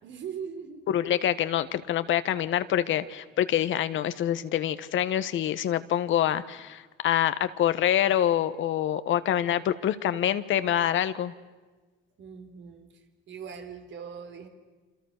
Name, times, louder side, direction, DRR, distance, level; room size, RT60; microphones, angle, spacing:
voice 1, 0.0-1.0 12.2-14.5, right 7 dB, 70° right, 5 dB, 3.6 m, -41 dB
voice 2, 0.9-11.3, left 11 dB, 75° left, 13 dB, 1.3 m, -26 dB
27.5 x 26.5 x 6.6 m, 1.3 s
cardioid pair, 90°, 20 cm